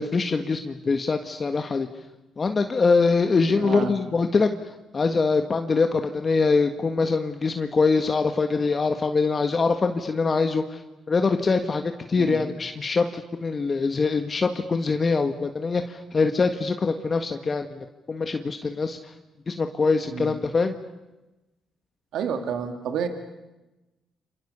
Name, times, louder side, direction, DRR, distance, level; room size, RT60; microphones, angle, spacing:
voice 1, 0.0-1.9 2.4-10.8 11.1-19.1 19.5-20.7, left 4 dB, 35° left, 6 dB, 1.6 m, -23 dB
voice 2, 3.6-3.9 12.2-12.4 20.1-20.3 22.1-23.1, right 7 dB, 80° right, 6 dB, 2.6 m, -29 dB
29.5 x 27.0 x 7.0 m, 1.1 s
cardioid pair, 90°, 0 cm